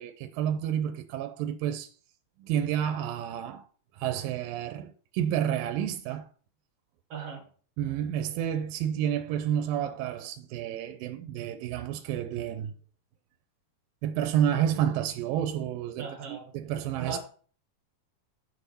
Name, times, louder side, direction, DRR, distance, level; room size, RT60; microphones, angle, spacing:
voice 1, 0.0-1.9 2.4-3.7 3.9-6.3 7.8-12.7 14.0-17.2, right 10 dB, 85° right, 2.3 m, -30 dB
voice 2, 7.1-7.4 16.0-16.5 17.0-17.2, right 5 dB, 65° right, 1.6 m, -37 dB
7.6 x 6.9 x 4.2 m
omnidirectional pair, 4.2 m